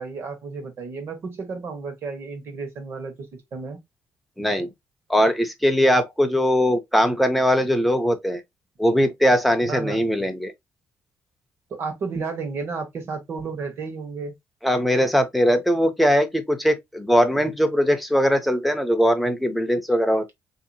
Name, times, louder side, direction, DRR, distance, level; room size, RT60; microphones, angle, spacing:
voice 1, 0.0-3.1 3.5-3.8 9.7-10.0 11.7-14.3, right 4 dB, 50° right, 1.1 m, -32 dB
voice 2, 4.4-4.7 5.1-8.4 8.8-10.5 14.6-20.3, equal, ahead, 0.5 m, -20 dB
3.9 x 2.8 x 2.6 m
cardioid pair, 160°, 6 cm